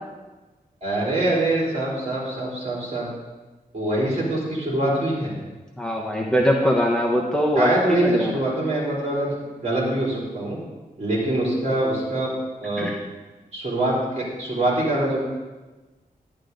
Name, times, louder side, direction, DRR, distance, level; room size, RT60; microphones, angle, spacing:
voice 1, 0.8-3.1 3.7-5.3 7.5-9.3 9.6-10.6 11.0-12.3 12.6-13.0 13.5-15.2, right 1 dB, 45° right, -5 dB, 4.2 m, -24 dB
voice 2, 5.8-7.7 8.0-8.4 12.8-13.0, equal, 5° left, -2 dB, 1.1 m, -21 dB
11.0 x 10.5 x 4.0 m, 1.2 s
wide cardioid pair, 135°, 15 cm